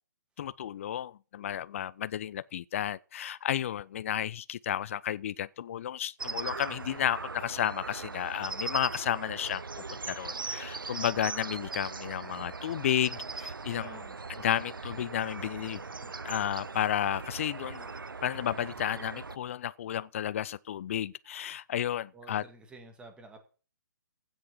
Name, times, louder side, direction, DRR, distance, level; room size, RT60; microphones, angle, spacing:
voice 1, 0.4-9.6 10.1-13.9 14.4-15.8 16.2-17.9 18.2-22.4, left 10 dB, 40° left, 0.5 m, -32 dB
sound 1, 6.2-19.4, right 4 dB, 85° right, 0.5 m, -40 dB
voice 2, 13.8-14.2 22.1-23.4, right 2 dB, 10° right, 2.1 m, -50 dB
16.0 x 6.3 x 6.3 m
figure-of-eight pair, 135°, 11 cm